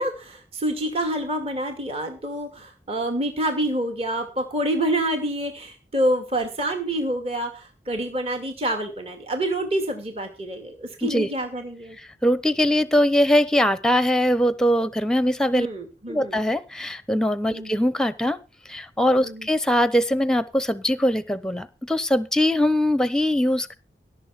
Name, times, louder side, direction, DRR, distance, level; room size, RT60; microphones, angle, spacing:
voice 1, 0.0-12.0 15.5-16.4 17.5-17.8 19.2-19.5, right 1 dB, 35° right, 4 dB, 2.3 m, -27 dB
voice 2, 12.0-15.7 16.1-18.4 18.7-23.8, equal, 5° left, 15 dB, 0.8 m, -21 dB
17.0 x 7.2 x 5.9 m, 0.31 s
head